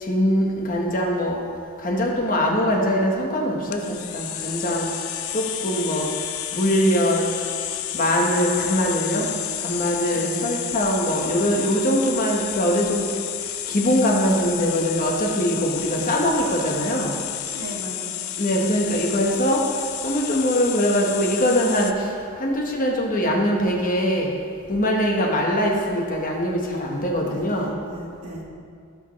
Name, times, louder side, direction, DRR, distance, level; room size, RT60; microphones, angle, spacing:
voice 1, 0.0-1.4 1.8-4.9 5.3-6.1 6.5-7.2 7.9-9.3 9.6-13.0 13.7-17.1 18.4-19.6 20.0-22.1 22.4-24.3 24.7-27.7, equal, 40° left, -1 dB, 1.3 m, -22 dB
sound 1, 3.7-21.9, left 11 dB, 75° left, 0.5 m, -31 dB
voice 2, 10.1-10.7 15.9-16.2 17.5-18.3 27.2-28.4, right 1 dB, 80° right, -2 dB, 1.8 m, -37 dB
16.5 x 6.3 x 3.2 m, 2.2 s
head